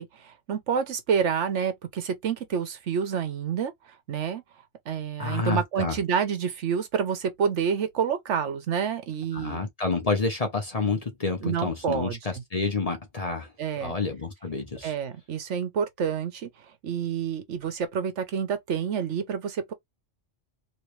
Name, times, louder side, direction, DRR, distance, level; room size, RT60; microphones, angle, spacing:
voice 1, 0.0-3.7 4.1-4.4 4.9-9.6 11.4-12.2 13.6-14.0 14.8-16.5 16.8-19.7, right 7 dB, 70° right, 1.2 m, -28 dB
voice 2, 5.2-6.0 9.3-13.5 13.8-14.9, left 4 dB, 35° left, 0.8 m, -29 dB
3.1 x 2.9 x 3.1 m
omnidirectional pair, 1.3 m